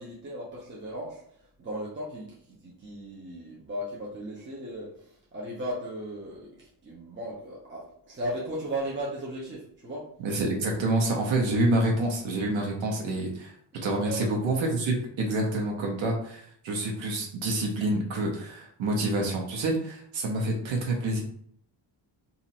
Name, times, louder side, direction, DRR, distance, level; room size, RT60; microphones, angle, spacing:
voice 1, 0.0-10.1 13.8-14.3, right 1 dB, 25° right, -5 dB, 0.8 m, -37 dB
voice 2, 10.2-13.5 13.8-21.2, right 2 dB, 85° right, 0 dB, 1.0 m, -27 dB
2.8 x 2.5 x 4.1 m, 0.64 s
cardioid pair, 150°, 45 cm